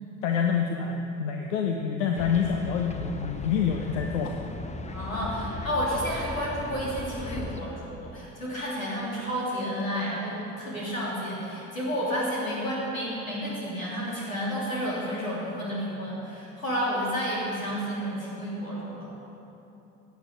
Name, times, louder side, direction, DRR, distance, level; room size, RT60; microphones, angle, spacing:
voice 1, 0.2-4.3, left 6 dB, 65° left, 3 dB, 1.0 m, -27 dB
sound 1, 2.2-7.6, left 3 dB, 15° left, 0.9 m, -37 dB
voice 2, 4.9-19.1, equal, 85° left, -5 dB, 3.2 m, -31 dB
16.5 x 9.5 x 6.6 m, 2.9 s
figure-of-eight pair, 55°, 40 cm